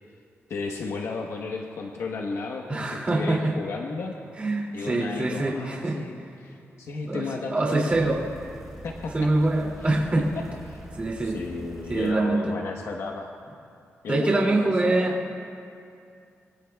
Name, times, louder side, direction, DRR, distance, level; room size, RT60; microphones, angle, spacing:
voice 1, 0.5-4.1 4.7-8.2 8.8-9.3 9.8-10.8 11.2-13.3 14.0-15.1, left 4 dB, 80° left, 1 dB, 1.1 m, -34 dB
voice 2, 2.7-3.5 4.4-6.0 7.1-7.2 7.5-8.2 9.1-10.2 11.0-11.4 11.9-12.4 14.1-15.1, right 2 dB, 30° right, -3 dB, 2.5 m, -24 dB
sound 1, 7.9-12.1 13.1-13.2, right 1 dB, 5° right, 4.1 m, -44 dB
24.5 x 24.0 x 2.3 m, 2.5 s
wide cardioid pair, 155°, 5 cm